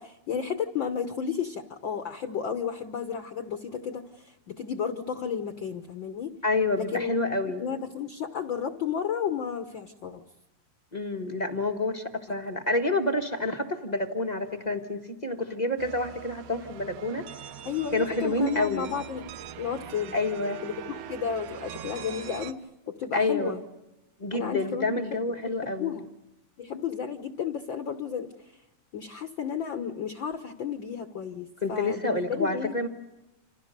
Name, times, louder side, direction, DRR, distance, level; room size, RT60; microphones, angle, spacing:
voice 1, 0.0-6.3 6.8-7.1 7.6-10.2 17.6-19.3 19.6-20.2 20.6-22.6 22.9-23.6 24.3-26.1 26.6-28.3 28.9-32.8, left 7 dB, 60° left, 9 dB, 1.3 m, -33 dB
voice 2, 6.4-7.6 10.9-17.3 17.9-18.9 20.1-20.6 23.1-23.5 24.2-25.9 31.6-32.9, left 2 dB, 35° left, 5 dB, 0.6 m, -28 dB
sound 1, 15.8-22.5, right 9 dB, 80° right, 2.7 m, -42 dB
28.0 x 27.5 x 6.7 m, 0.95 s
omnidirectional pair, 3.6 m